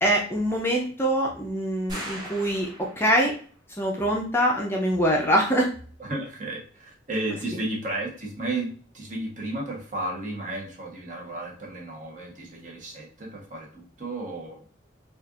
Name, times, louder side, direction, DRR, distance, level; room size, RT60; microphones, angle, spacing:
voice 1, 0.0-3.3 3.8-5.7, equal, 10° left, 0 dB, 0.5 m, -24 dB
sound 1, 1.9-3.4, equal, 20° right, 1.0 m, -39 dB
voice 2, 6.0-14.6, right 2 dB, 40° right, -1 dB, 1.0 m, -33 dB
4.2 x 2.4 x 2.4 m, 0.42 s
head